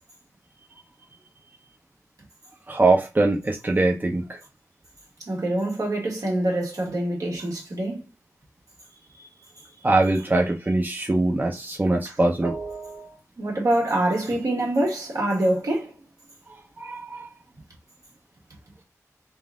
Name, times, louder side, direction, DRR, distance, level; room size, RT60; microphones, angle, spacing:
voice 1, 2.7-4.2 9.8-13.1 16.8-17.3, right 2 dB, 30° right, 0.7 m, -22 dB
voice 2, 5.3-8.0 12.0-12.2 13.4-16.0, right 1 dB, 75° right, 1.9 m, -25 dB
3.9 x 2.5 x 3.6 m
wide cardioid pair, 75°, 6 cm